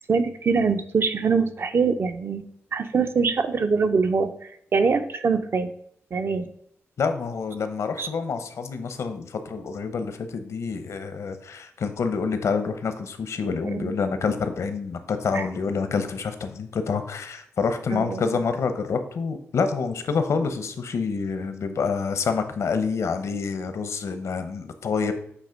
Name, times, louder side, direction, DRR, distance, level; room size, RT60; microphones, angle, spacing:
voice 1, 0.0-2.4 2.7-4.3 4.7-5.7 6.1-6.5 8.0-8.1 13.6-13.9 15.3-15.4 17.9-18.3, right 5 dB, 50° right, 9 dB, 0.7 m, -23 dB
voice 2, 7.0-25.1, left 5 dB, 70° left, 9 dB, 0.8 m, -27 dB
8.4 x 3.0 x 5.1 m, 0.68 s
cardioid pair, 90°, 5 cm